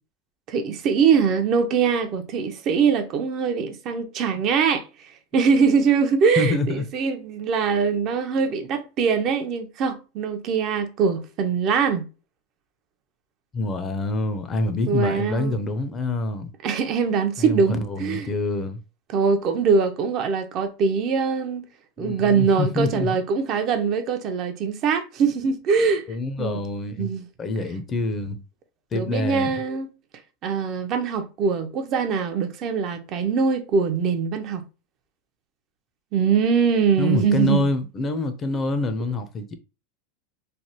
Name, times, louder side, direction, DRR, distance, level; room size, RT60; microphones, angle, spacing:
voice 1, 0.5-4.9 5.3-12.1 14.9-15.6 16.6-18.3 19.1-21.6 22.0-26.1 26.4-26.6 27.0-27.3 28.9-29.9 30.4-34.6 36.1-37.7, right 5 dB, 45° right, 0.5 m, -22 dB
voice 2, 6.4-6.8 13.5-16.5 17.4-18.8 22.0-23.2 26.1-27.1 27.4-28.4 28.9-29.5 37.0-39.6, left 2 dB, 30° left, 0.5 m, -26 dB
3.2 x 2.0 x 2.8 m
hypercardioid pair, 105°, 0 cm